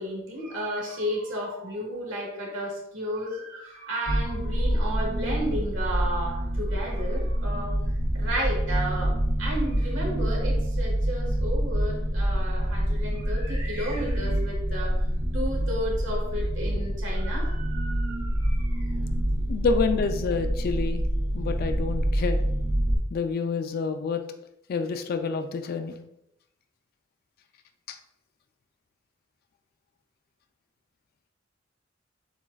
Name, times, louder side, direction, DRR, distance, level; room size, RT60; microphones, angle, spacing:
voice 1, 0.0-7.7 8.1-14.9 15.3-19.0, equal, 85° right, -2 dB, 1.5 m, -33 dB
sound 1, 4.1-23.0, equal, 45° right, 0.6 m, -27 dB
voice 2, 19.5-21.0 21.3-22.4 23.1-24.2 24.7-25.9 27.9-28.0, left 4 dB, 50° left, 8 dB, 0.3 m, -28 dB
7.1 x 2.4 x 2.3 m, 0.81 s
head